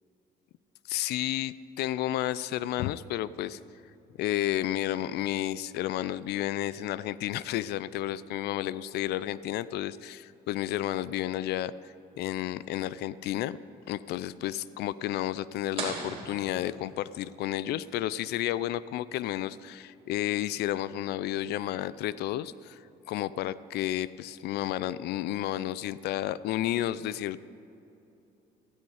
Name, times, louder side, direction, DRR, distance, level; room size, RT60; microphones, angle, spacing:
voice 1, 0.9-3.6 4.2-13.6 13.9-22.8 23.1-27.4, left 13 dB, 75° left, 18 dB, 0.4 m, -31 dB
sound 1, 15.8-17.4, right 3 dB, 35° right, 2.7 m, -39 dB
14.0 x 12.5 x 4.8 m, 2.8 s
cardioid pair, 110°, 17 cm